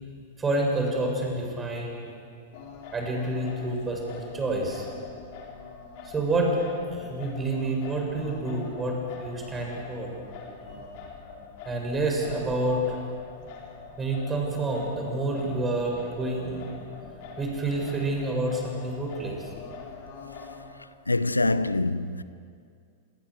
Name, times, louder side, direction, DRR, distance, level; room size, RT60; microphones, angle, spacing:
voice 1, 0.4-2.1 2.9-4.9 6.0-6.6 6.9-10.1 10.6-10.8 11.7-12.8 14.0-16.7 17.4-19.5, right 2 dB, 15° right, 7.0 m, -28 dB
Singing, 2.5-20.7, left 5 dB, 50° left, 4.7 m, -44 dB
voice 2, 21.1-22.2, left 2 dB, 90° left, 0.6 m, -25 dB
26.5 x 22.0 x 6.6 m
figure-of-eight pair, 95°, 0 cm